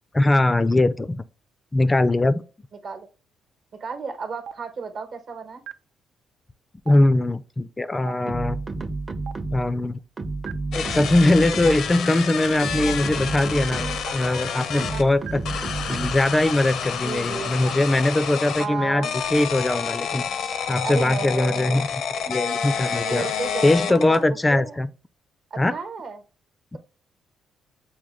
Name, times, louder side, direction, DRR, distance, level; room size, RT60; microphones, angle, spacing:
voice 1, 0.1-1.2 1.7-2.4 6.9-8.6 9.5-10.0 10.7-15.4 15.9-21.9 22.3-23.3 23.6-24.9 25.6-25.7 26.7-26.8, left 2 dB, 20° left, 0.3 m, -21 dB
voice 2, 3.8-5.6 14.3-15.0 15.3-15.4 17.0-17.6 18.6-19.1 20.8-21.8 23.0-24.7 25.5-26.2, right 5 dB, 60° right, 1.0 m, -33 dB
Stream, 4.4-4.5 5.6-5.7 6.8-6.9 8.0-8.1 9.2-9.3 10.4-10.5 11.6-11.7 12.8-12.9 14.0-14.1 15.2-15.3 16.4-16.5 17.6-17.7, right 8 dB, 85° right, 0.4 m, -37 dB
sound 1, 8.3-9.8 10.2-12.0 12.5-14.1 14.8-16.3, right 3 dB, 30° right, 0.5 m, -31 dB
sound 2, 10.7-15.0 15.4-18.7 19.0-24.2, left 7 dB, 75° left, 0.5 m, -29 dB
6.2 x 2.2 x 3.5 m
cardioid pair, 90°, 0 cm